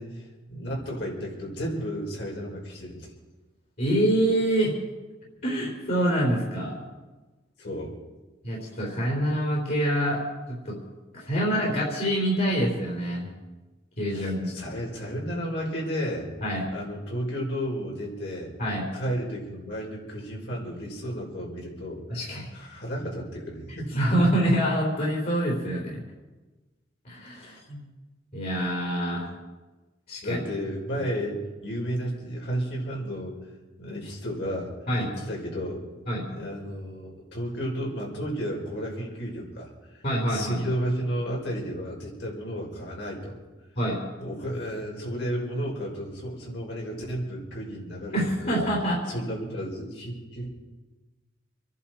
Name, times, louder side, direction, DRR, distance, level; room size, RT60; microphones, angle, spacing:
voice 1, 0.0-3.1 7.6-7.9 14.1-16.3 16.7-18.5 18.9-22.0 22.5-23.9 27.4-27.5 30.2-33.4 33.8-34.7 35.0-35.8 36.3-39.7 40.3-43.3 44.2-48.2 48.4-48.7 49.1-50.5, equal, 75° left, -3 dB, 5.3 m, -32 dB
voice 2, 3.8-4.8 5.4-6.7 8.4-10.2 10.5-10.8 11.1-13.3 14.0-14.5 16.4-16.6 18.6-18.9 22.1-22.5 23.9-26.0 27.0-27.8 28.3-29.3 30.1-30.4 34.9-35.1 36.1-36.3 40.0-40.6 43.8-44.0 48.1-49.0, right 1 dB, 55° left, -3 dB, 4.1 m, -26 dB
26.5 x 11.0 x 4.6 m, 1.2 s
head